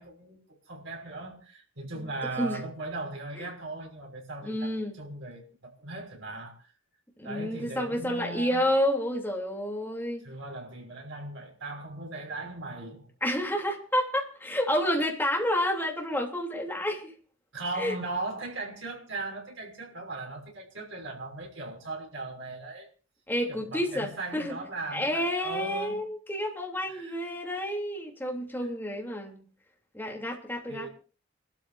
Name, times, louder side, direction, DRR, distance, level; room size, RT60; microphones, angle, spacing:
voice 1, 0.0-6.7 7.2-8.7 10.2-13.1 17.5-22.9 23.5-26.0 26.9-27.2 30.7-30.9, right 2 dB, 70° right, 6.1 m, -38 dB
voice 2, 4.4-4.9 7.2-10.2 13.2-17.1 17.8-17.9 23.3-24.6 24.9-29.4 29.9-30.9, equal, 10° left, 3.1 m, -29 dB
29.5 x 13.0 x 2.7 m
head